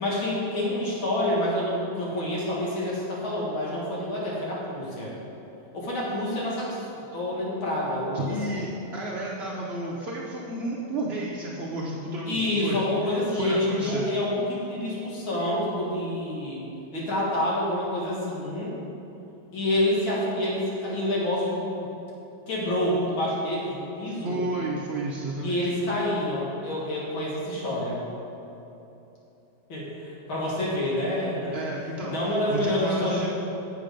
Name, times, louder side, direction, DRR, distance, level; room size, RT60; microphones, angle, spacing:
voice 1, 0.0-5.1 5.7-8.6 12.3-16.6 16.9-18.7 19.5-21.8 22.5-24.4 25.4-28.0 29.7-31.6 32.0-33.3, left 1 dB, 80° left, -6 dB, 2.7 m, -28 dB
voice 2, 8.1-14.1 24.2-25.7 31.5-33.3, right 1 dB, 65° right, -4 dB, 0.6 m, -32 dB
7.4 x 7.3 x 5.1 m, 2.9 s
omnidirectional pair, 2.2 m